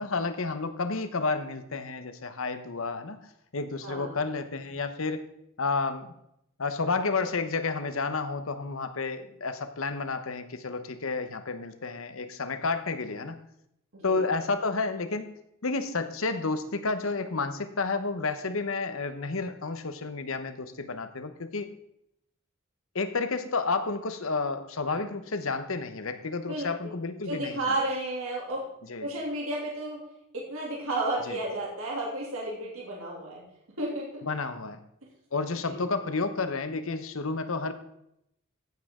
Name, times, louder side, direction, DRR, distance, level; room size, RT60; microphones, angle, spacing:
voice 1, 0.0-5.2 5.6-6.1 6.6-13.4 14.0-15.3 15.6-21.7 22.9-27.8 28.9-29.1 31.3-31.4 34.2-34.8 35.3-37.7, left 4 dB, 75° left, 9 dB, 1.0 m, -31 dB
voice 2, 3.8-4.1 13.9-14.3 26.5-26.9 27.3-28.6 29.0-30.0 30.3-33.4 33.8-34.2 35.6-35.8, right 2 dB, 85° right, -3 dB, 2.8 m, -32 dB
15.0 x 7.6 x 3.7 m, 0.77 s
head